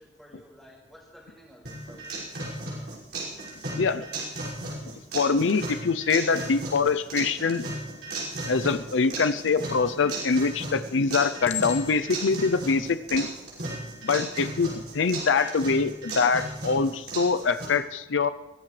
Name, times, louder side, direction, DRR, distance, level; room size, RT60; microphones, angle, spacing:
voice 1, 0.0-2.1, equal, ahead, -4 dB, 5.0 m, -52 dB
sound 1, 1.7-17.7, right 2 dB, 60° right, 6.0 m, -35 dB
voice 2, 5.1-7.6 8.5-13.3 14.0-18.3, left 4 dB, 85° left, 11 dB, 0.6 m, -24 dB
Chink clink, 11.4-12.2 13.0-13.3, left 8 dB, 35° left, 0.8 m, -35 dB
22.0 x 17.0 x 3.3 m, 1.0 s
head